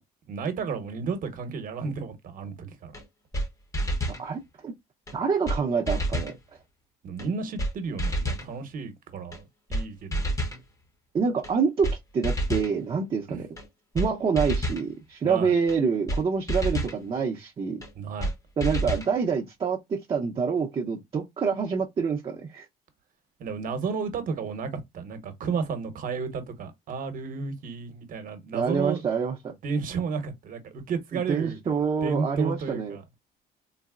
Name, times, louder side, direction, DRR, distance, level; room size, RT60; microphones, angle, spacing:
voice 1, 0.3-2.9 7.0-10.3 13.3-13.4 15.2-15.5 18.0-18.3 23.4-29.0 29.6-31.6 32.0-33.0, right 5 dB, 55° right, 0.9 m, -32 dB
sound 1, 2.9-3.0 3.3-3.5 3.7-4.2 5.1-5.2 5.5-5.6 5.9-6.4 7.2-7.3 7.6-7.7 8.0-8.5 9.3-9.4 9.7-9.8 10.1-10.6 11.4-11.5 11.8-12.0 12.2-12.7 13.6-13.7 13.9-14.1 14.4-14.8 15.7-15.8 16.1-16.2 16.5-17.0 17.8-17.9 18.2-18.3 18.6-19.1, right 1 dB, 20° left, 0.8 m, -28 dB
voice 2, 4.2-4.7 5.1-6.4 11.1-13.5 13.9-17.8 18.6-22.6 28.5-29.5 31.3-33.0, right 5 dB, 30° right, 0.6 m, -26 dB
3.9 x 2.0 x 2.4 m
cardioid pair, 110°, 17 cm